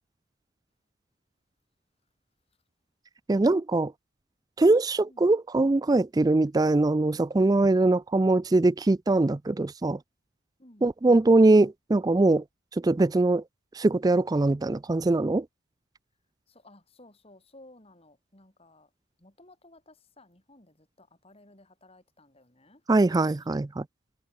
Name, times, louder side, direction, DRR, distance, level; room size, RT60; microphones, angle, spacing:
voice 1, 3.3-3.9 4.6-10.0 10.8-12.4 12.8-13.4 13.8-15.4 22.9-23.8, right 2 dB, 20° right, 0.3 m, -22 dB
voice 2, 16.5-18.9 19.2-23.4, left 2 dB, 30° left, 4.3 m, -56 dB
head